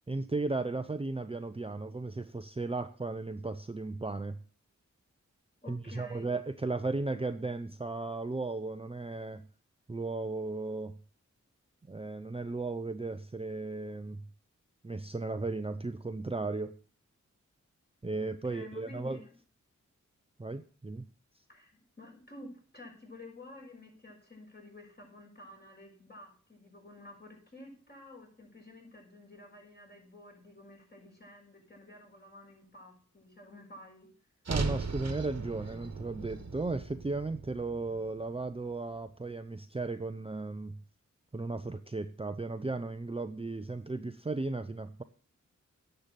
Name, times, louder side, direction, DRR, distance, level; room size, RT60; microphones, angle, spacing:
voice 1, 0.1-4.4 5.7-9.5 9.9-11.0 11.9-14.2 14.8-16.7 18.0-19.2 20.4-21.0 34.5-40.8 41.3-45.0, right 3 dB, 20° right, 9 dB, 0.6 m, -35 dB
voice 2, 5.6-6.3 18.2-19.4 21.5-34.1, left 1 dB, 35° left, -1 dB, 6.2 m, -51 dB
sound 1, 34.4-38.7, right 4 dB, 55° right, 1.3 m, -38 dB
10.5 x 6.8 x 7.5 m, 0.43 s
cardioid pair, 55°, 30 cm